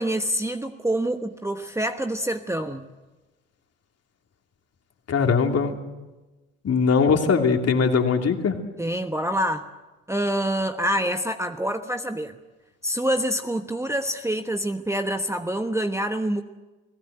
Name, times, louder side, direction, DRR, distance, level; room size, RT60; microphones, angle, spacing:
voice 1, 0.0-2.9 8.8-9.7 10.1-12.4 12.8-16.4, right 1 dB, 5° right, 7 dB, 1.2 m, -26 dB
voice 2, 5.1-5.8 6.6-8.6, left 5 dB, 40° left, 4 dB, 2.9 m, -21 dB
29.0 x 17.5 x 8.0 m, 1.2 s
hypercardioid pair, 60°, 39 cm